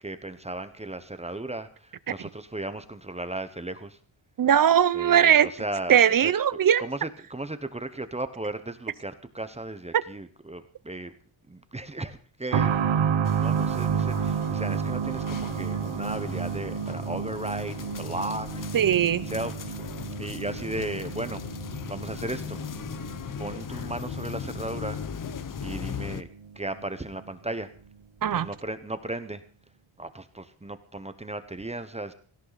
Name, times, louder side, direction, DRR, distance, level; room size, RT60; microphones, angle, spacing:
voice 1, 0.0-4.0 4.9-6.3 6.8-11.1 11.5-18.8 19.2-19.8 20.2-21.4 21.9-22.6 23.4-25.0 25.6-26.3 26.5-27.7 28.3-29.4 30.0-32.1, right 2 dB, 15° right, 11 dB, 1.0 m, -36 dB
voice 2, 4.4-5.5 5.9-6.8 18.7-19.3 28.2-28.5, right 9 dB, 45° right, 18 dB, 0.7 m, -20 dB
sound 1, 12.5-26.9 27.2-27.3 28.3-28.4, right 7 dB, 70° right, 1.2 m, -31 dB
sound 2, 13.2-26.2, left 8 dB, 40° left, 0.7 m, -38 dB
17.5 x 17.0 x 4.1 m, 0.41 s
wide cardioid pair, 160°, 49 cm